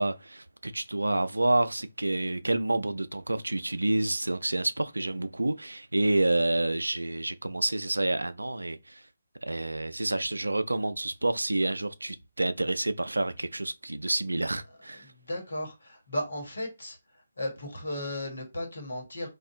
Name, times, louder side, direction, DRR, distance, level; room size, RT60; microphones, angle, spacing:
voice 1, 0.0-9.0 9.4-15.1, right 2 dB, 80° right, 0.3 m, -28 dB
voice 2, 15.3-17.0 17.4-19.3, left 1 dB, 70° left, 1.2 m, -35 dB
2.6 x 2.3 x 3.7 m
figure-of-eight pair, 140°, 0 cm